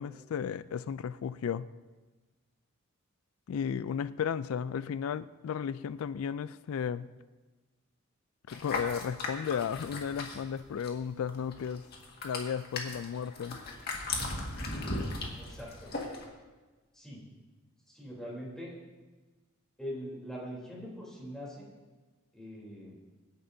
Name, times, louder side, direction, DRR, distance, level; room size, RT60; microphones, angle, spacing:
voice 1, 0.0-1.7 3.5-7.1 8.5-11.8 12.2-13.6, left 7 dB, 85° left, 15 dB, 0.4 m, -34 dB
sound 1, 8.5-11.0 11.3-16.2, left 2 dB, 50° left, 1.8 m, -37 dB
voice 2, 15.4-15.9 16.9-17.2 17.9-18.7 19.8-21.7 22.3-22.9, equal, 5° left, -5 dB, 3.4 m, -42 dB
25.0 x 10.5 x 2.7 m, 1.3 s
head